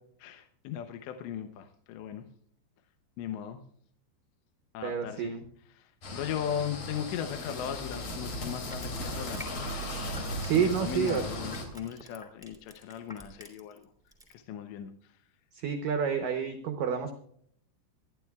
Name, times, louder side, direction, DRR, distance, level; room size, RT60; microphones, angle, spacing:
voice 1, 0.2-2.3 3.2-3.6 4.7-5.3 5.7-9.4 10.5-13.9 14.3-15.2, left 9 dB, 80° left, 7 dB, 2.9 m, -38 dB
voice 2, 4.8-5.4 10.4-11.2 15.6-17.1, right 7 dB, 85° right, 7 dB, 1.9 m, -29 dB
sound 1, 6.0-11.6, left 1 dB, 50° left, 4.5 m, -37 dB
Crushing, 8.5-13.8 14.1-14.3, right 1 dB, ahead, 1.8 m, -49 dB
26.0 x 10.5 x 2.3 m, 0.65 s
omnidirectional pair, 5.3 m